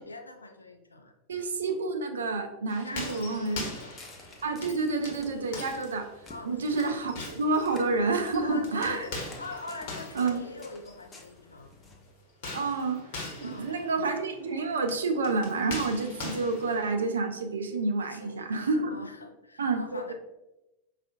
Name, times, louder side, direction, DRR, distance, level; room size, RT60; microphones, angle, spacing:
voice 1, 0.0-1.1 2.8-4.0 6.3-7.0 8.4-11.7 13.4-13.7 18.0-20.1, left 2 dB, 80° left, 5 dB, 0.4 m, -43 dB
voice 2, 1.3-3.7 4.4-6.1 6.4-9.1 10.2-10.4 12.5-13.0 13.4-18.9 19.6-20.1, right 3 dB, 70° right, 6 dB, 0.4 m, -29 dB
sound 1, 2.7-11.3 12.3-16.9, left 2 dB, 50° left, 1.0 m, -42 dB
Walk footsteps, 3.4-12.1, left 3 dB, 20° left, 0.6 m, -52 dB
4.9 x 2.4 x 2.4 m, 0.95 s
figure-of-eight pair, 90°, 0 cm